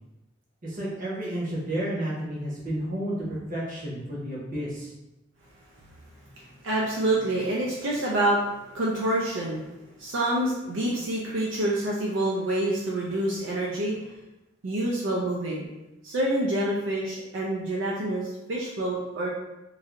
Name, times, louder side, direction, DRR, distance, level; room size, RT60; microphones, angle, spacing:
voice 1, 0.6-4.9, right 1 dB, 45° right, -6 dB, 1.0 m, -31 dB
voice 2, 6.3-13.9 14.6-15.7 16.0-19.3, right 1 dB, 75° right, -4 dB, 0.5 m, -27 dB
3.1 x 2.6 x 2.5 m, 0.99 s
head